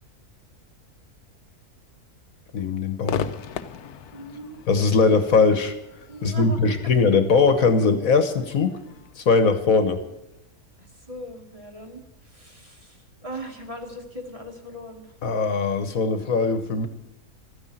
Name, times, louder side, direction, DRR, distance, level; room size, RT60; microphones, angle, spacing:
voice 1, 2.5-3.3 4.7-5.7 6.2-8.7 9.2-10.0 15.2-16.9, left 4 dB, 65° left, 9 dB, 1.6 m, -20 dB
Crowd / Fireworks, 3.0-10.4, left 9 dB, 85° left, 1.3 m, -38 dB
voice 2, 4.1-4.6 6.1-6.9 10.8-15.1, right 1 dB, 20° right, 1 dB, 2.3 m, -39 dB
13.5 x 9.8 x 9.1 m, 0.87 s
omnidirectional pair, 1.6 m